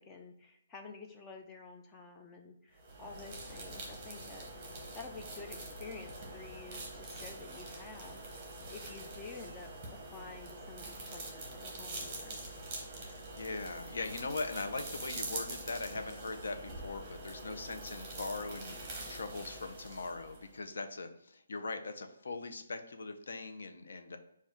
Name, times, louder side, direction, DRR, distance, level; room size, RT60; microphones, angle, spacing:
voice 1, 0.0-4.5 4.9-9.7 10.1-12.4, left 4 dB, 10° left, 3 dB, 0.3 m, -50 dB
sound 1, 2.8-20.6, right 2 dB, 15° right, 0.9 m, -45 dB
voice 2, 13.0-18.8 19.1-24.2, left 3 dB, 70° left, 7 dB, 0.6 m, -40 dB
4.5 x 2.3 x 4.4 m, 0.76 s
hypercardioid pair, 175°, 0 cm